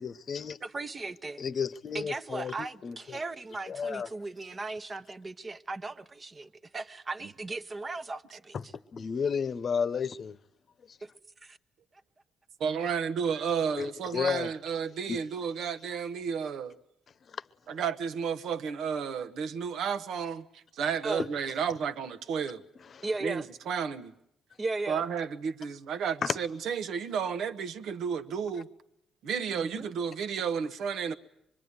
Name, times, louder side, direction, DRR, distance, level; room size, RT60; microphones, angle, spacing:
voice 1, 0.0-0.6 1.4-2.5 2.8-3.2 3.7-4.1 8.9-10.4 10.9-11.0 13.8-14.5 15.1-15.2 17.3-17.4 22.9-23.1 26.2-26.4, left 6 dB, 50° left, 1.0 m, -32 dB
voice 2, 0.6-1.4 1.9-8.7 11.0-11.1 11.4-11.6 21.0-21.3 23.0-23.5 24.6-25.1 29.5-29.9, right 3 dB, 30° right, 1.2 m, -37 dB
voice 3, 12.6-16.8 17.7-22.6 23.2-24.1 24.9-28.7 29.2-31.1, right 6 dB, 75° right, 1.2 m, -32 dB
25.0 x 22.5 x 9.7 m
cardioid pair, 90°, 0 cm